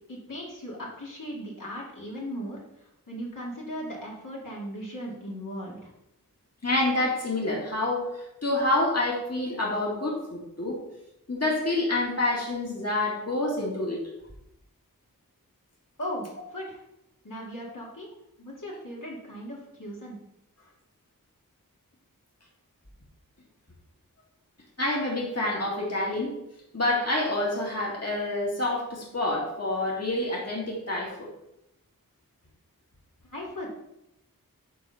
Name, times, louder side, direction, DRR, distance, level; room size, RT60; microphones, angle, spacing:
voice 1, 0.1-5.9 16.0-16.8 17.2-18.1 18.4-20.2 33.2-33.7, equal, 65° left, -4 dB, 2.1 m, -37 dB
voice 2, 6.6-10.8 11.3-14.0 24.8-26.3 26.7-31.3, left 2 dB, 45° left, -3 dB, 2.1 m, -27 dB
6.8 x 4.2 x 6.4 m, 0.85 s
wide cardioid pair, 45°, 35 cm